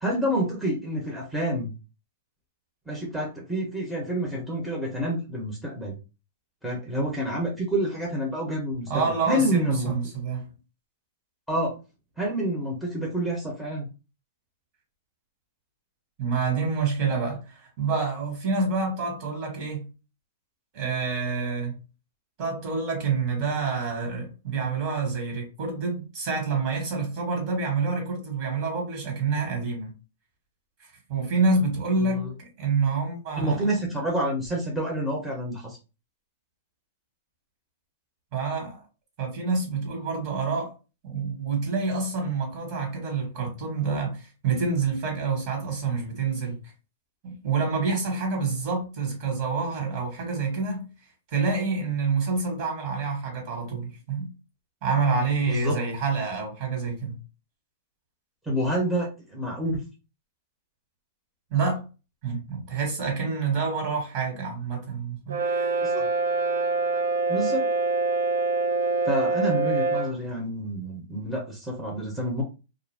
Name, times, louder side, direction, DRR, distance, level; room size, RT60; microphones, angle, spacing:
voice 1, 0.0-1.7 2.9-6.0 6.6-9.9 11.5-11.8 12.2-13.9 32.0-32.3 33.4-35.8 55.5-55.8 58.5-59.8 65.8-66.1 67.3-67.6 69.0-72.4, equal, ahead, 0.8 m, -28 dB
voice 2, 8.9-10.5 16.2-19.9 20.7-21.7 22.4-29.9 31.1-33.9 38.3-38.8 39.2-40.7 41.0-46.6 47.2-50.9 51.3-54.3 54.8-57.2 61.5-61.8 62.2-65.8, right 4 dB, 45° right, 1.6 m, -27 dB
Brass instrument, 65.3-70.2, right 3 dB, 90° right, 0.5 m, -25 dB
2.4 x 2.1 x 3.4 m
hypercardioid pair, 130°, 0 cm